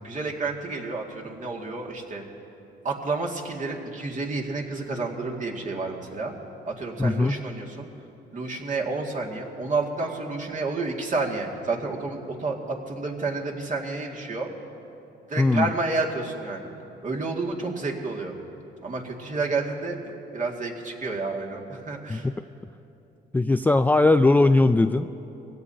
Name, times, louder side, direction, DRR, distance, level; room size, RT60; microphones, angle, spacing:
voice 1, 0.0-2.2 2.8-6.3 6.7-7.9 8.3-14.5 15.3-16.7 17.0-18.3 18.8-20.0 20.3-22.3, right 3 dB, 40° right, -1 dB, 2.2 m, -30 dB
voice 2, 7.0-7.4 15.4-15.7 22.1-22.3 23.3-25.1, left 2 dB, 10° left, 9 dB, 0.3 m, -19 dB
23.5 x 16.5 x 2.8 m, 2.9 s
cardioid pair, 90°, 20 cm